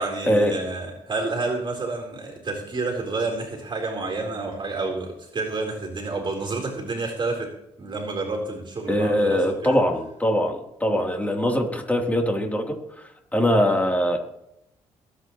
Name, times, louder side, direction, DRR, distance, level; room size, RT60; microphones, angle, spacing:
voice 1, 0.0-7.5 7.8-9.8, right 3 dB, 40° right, 1 dB, 4.0 m, -29 dB
voice 2, 8.9-12.8 13.3-14.2, equal, 10° left, 1 dB, 3.3 m, -22 dB
22.5 x 8.9 x 3.1 m, 0.82 s
supercardioid pair, 65°, 13 cm